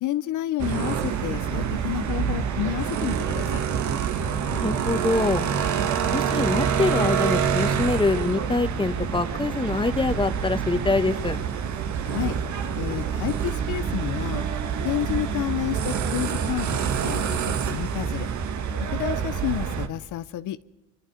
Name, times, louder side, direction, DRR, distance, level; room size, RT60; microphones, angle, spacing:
voice 1, 0.0-3.6 12.0-12.4 12.7-14.4 14.8-18.3 18.9-20.6, left 14 dB, 80° left, 13 dB, 0.7 m, -30 dB
sound 1, 0.6-19.9, right 7 dB, 70° right, 1.8 m, -26 dB
voice 2, 4.4-5.4 5.8-11.4, left 3 dB, 15° left, 10 dB, 1.6 m, -25 dB
sound 2, 12.2-17.4, right 4 dB, 40° right, 3.7 m, -41 dB
27.5 x 25.5 x 5.0 m, 1.1 s
cardioid pair, 90°, 30 cm